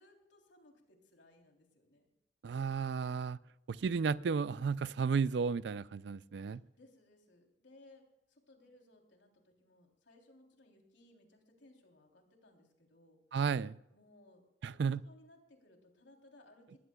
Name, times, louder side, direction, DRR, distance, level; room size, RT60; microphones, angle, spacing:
voice 1, 0.0-2.1 6.4-13.2 13.9-16.8, left 1 dB, 80° left, 2 dB, 3.3 m, -63 dB
voice 2, 2.4-3.4 3.7-6.6 13.3-13.8 14.6-15.0, right 5 dB, 65° right, 18 dB, 0.4 m, -33 dB
21.0 x 16.0 x 2.3 m, 0.89 s
head